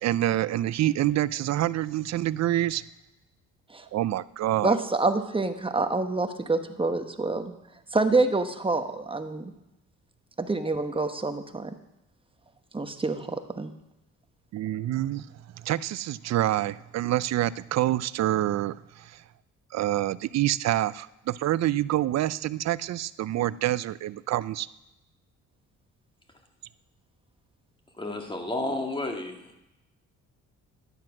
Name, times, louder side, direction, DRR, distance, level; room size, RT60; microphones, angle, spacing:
voice 1, 0.0-2.8 3.9-4.8 14.5-15.3 15.6-19.2 19.7-24.7, right 14 dB, 60° right, 18 dB, 0.5 m, -27 dB
voice 2, 4.6-7.5 7.9-9.5 10.4-11.7 12.7-13.7, right 3 dB, 15° right, 7 dB, 1.2 m, -27 dB
voice 3, 28.0-29.5, left 2 dB, 15° left, 3 dB, 2.1 m, -31 dB
12.0 x 10.0 x 6.0 m, 0.93 s
cardioid pair, 90°, 30 cm